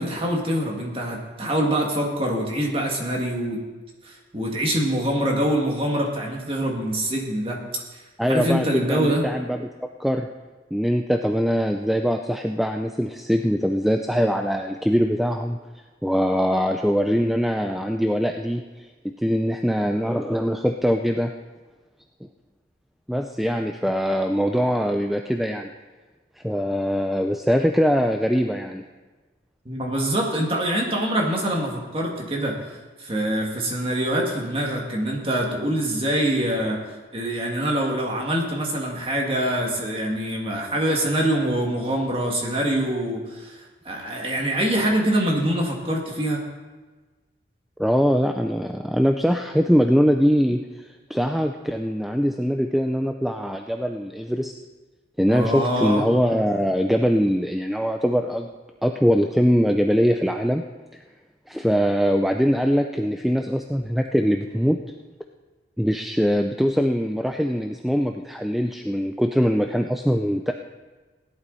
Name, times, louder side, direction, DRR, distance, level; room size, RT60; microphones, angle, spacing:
voice 1, 0.0-3.6 4.0-7.6 8.3-9.2 29.7-32.6 33.0-36.8 37.1-46.4 55.3-56.0, right 1 dB, 30° right, -1 dB, 2.0 m, -24 dB
voice 2, 8.2-9.7 10.0-10.3 10.7-15.6 16.0-21.3 23.1-25.7 26.4-28.8 47.8-54.5 55.2-58.5 58.8-60.6 61.5-64.8 65.8-70.5, equal, ahead, 4 dB, 0.4 m, -22 dB
17.0 x 11.0 x 4.1 m, 1.3 s
head